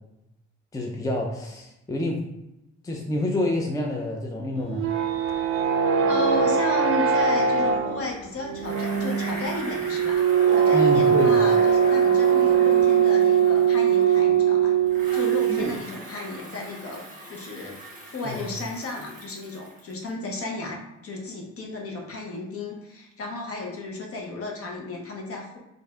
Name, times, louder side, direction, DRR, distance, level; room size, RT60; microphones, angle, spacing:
voice 1, 0.7-2.2 2.8-4.9 10.7-11.4 15.5-15.7 18.2-18.5, left 1 dB, 10° left, -1 dB, 0.5 m, -27 dB
sound 1, 4.6-15.8, right 7 dB, 45° right, 0.5 m, -21 dB
voice 2, 6.0-14.7 15.1-17.0 17.3-25.6, left 2 dB, 50° left, 0 dB, 1.0 m, -34 dB
Bicycle, 8.6-14.4 14.9-20.1, right 1 dB, 25° right, 1.4 m, -42 dB
3.2 x 2.6 x 3.5 m, 0.90 s
cardioid pair, 90°, 30 cm